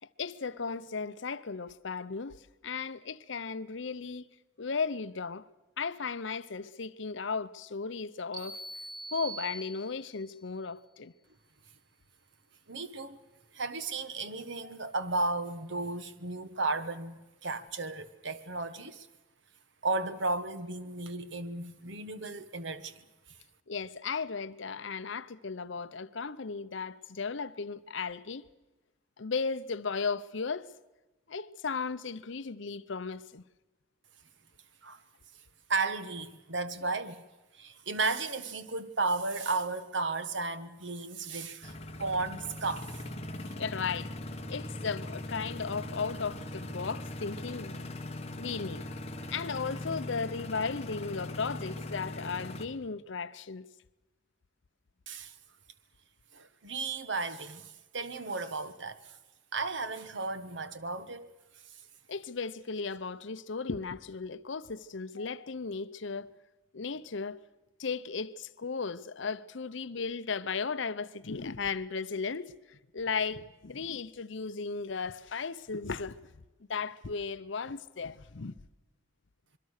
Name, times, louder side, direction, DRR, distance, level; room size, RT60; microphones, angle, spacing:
voice 1, 0.2-2.4 2.6-4.2 4.6-5.4 5.8-8.6 9.1-11.1 14.6-14.8 23.7-28.4 29.2-30.7 31.3-33.4 43.6-44.1 44.5-47.8 48.4-48.8 49.3-53.6 62.1-66.3 66.7-67.4 67.8-76.2 76.7-78.5, left 5 dB, 65° left, 0.7 m, -35 dB
sound 1, 8.3-10.2, right 2 dB, 20° right, 4.2 m, -42 dB
voice 2, 12.7-13.2 13.5-19.1 19.8-23.0 34.8-35.0 35.7-37.2 37.5-43.0 55.1-55.3 56.3-59.2 59.5-61.3, right 3 dB, 65° right, 1.4 m, -34 dB
sound 2, 41.6-52.7, left 1 dB, 30° left, 1.5 m, -40 dB
26.0 x 22.5 x 6.6 m
head